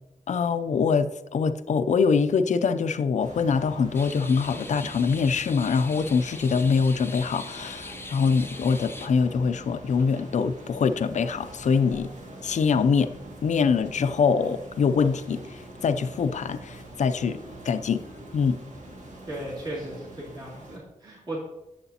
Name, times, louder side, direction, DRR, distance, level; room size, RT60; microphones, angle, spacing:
voice 1, 0.3-12.1 12.4-13.1 13.4-18.0 18.3-18.6, left 5 dB, 60° left, 10 dB, 0.5 m, -24 dB
sound 1, 3.2-20.8, right 1 dB, 65° right, 2.1 m, -44 dB
sound 2, 3.9-9.1, left 2 dB, 15° left, 0.7 m, -42 dB
voice 2, 19.3-21.5, right 1 dB, 35° right, -7 dB, 2.6 m, -36 dB
11.0 x 7.9 x 2.8 m, 0.94 s
wide cardioid pair, 115°, 14 cm